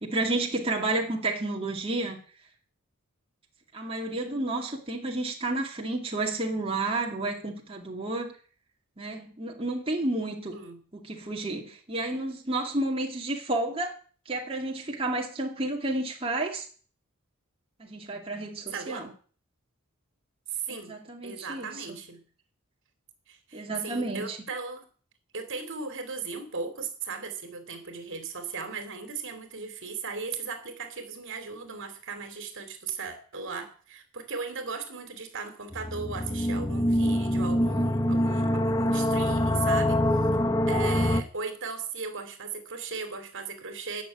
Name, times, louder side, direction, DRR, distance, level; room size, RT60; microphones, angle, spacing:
voice 1, 0.0-2.2 3.7-8.3 9.0-10.6 10.9-14.0 14.3-16.7 17.8-19.1 20.7-21.9 23.5-24.4, right 2 dB, 25° right, 2.4 m, -31 dB
voice 2, 18.7-19.1 20.5-20.9 21.2-22.2 23.3-24.9 25.3-40.3 40.7-44.0, right 5 dB, 60° right, 2.9 m, -37 dB
sound 1, 35.7-41.2, left 1 dB, 15° left, 1.0 m, -25 dB
15.5 x 6.9 x 9.9 m
head